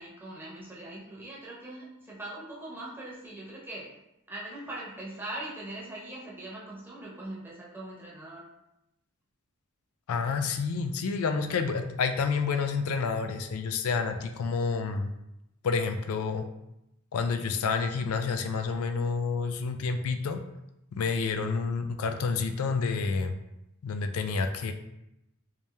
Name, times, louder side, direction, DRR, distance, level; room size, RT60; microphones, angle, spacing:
voice 1, 0.0-3.9 4.3-8.4, right 1 dB, 10° right, -6 dB, 0.8 m, -41 dB
voice 2, 10.1-15.1 15.6-16.5 17.1-20.4 20.9-23.4 23.8-24.7, left 5 dB, 75° left, 7 dB, 0.4 m, -29 dB
3.3 x 2.7 x 3.3 m, 0.88 s
head